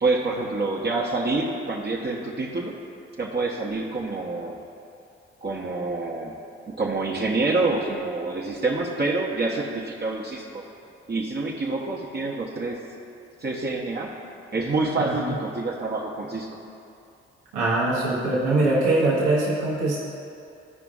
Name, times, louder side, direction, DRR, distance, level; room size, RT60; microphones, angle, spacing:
voice 1, 0.0-2.8 3.2-4.6 5.4-6.3 6.7-10.6 11.1-12.8 13.4-14.1 14.5-16.6, right 3 dB, 35° right, -3 dB, 1.0 m, -27 dB
voice 2, 15.0-15.3 17.5-20.0, right 2 dB, 90° right, -6 dB, 1.1 m, -22 dB
13.5 x 4.9 x 2.4 m, 2.6 s
hypercardioid pair, 45°, 29 cm